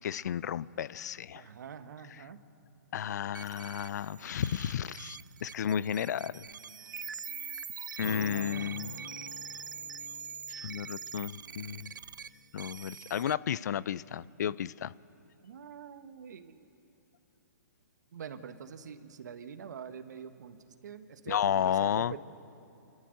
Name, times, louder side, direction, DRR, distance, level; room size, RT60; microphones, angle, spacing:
voice 1, 0.0-1.5 2.9-6.4 8.0-8.9 10.6-11.9 12.5-14.9 21.3-22.1, left 9 dB, 65° left, 20 dB, 0.5 m, -32 dB
voice 2, 1.3-2.4 8.0-8.8 15.4-16.7 18.1-22.2, right 7 dB, 65° right, 9 dB, 1.4 m, -45 dB
sound 1, 3.3-13.3, right 7 dB, 90° right, 0.5 m, -44 dB
Acoustic guitar / Strum, 8.0-12.8, left 2 dB, 30° left, 1.6 m, -50 dB
28.5 x 12.0 x 7.8 m, 2.8 s
hypercardioid pair, 140°, 10 cm